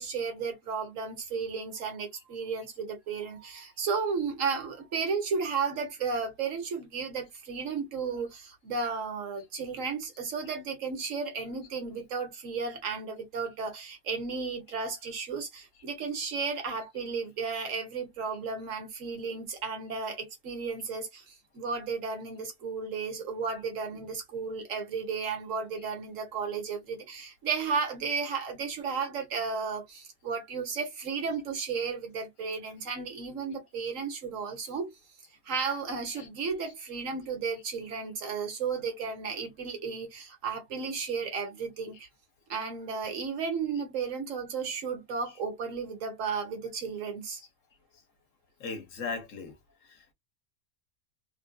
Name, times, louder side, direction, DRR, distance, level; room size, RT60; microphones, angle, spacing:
voice 1, 0.0-34.9 35.4-42.1 42.5-47.4, right 5 dB, 75° right, 1.4 m, -34 dB
voice 2, 48.6-49.6 49.8-50.1, left 4 dB, 75° left, 1.3 m, -40 dB
3.3 x 2.5 x 2.2 m
omnidirectional pair, 1.4 m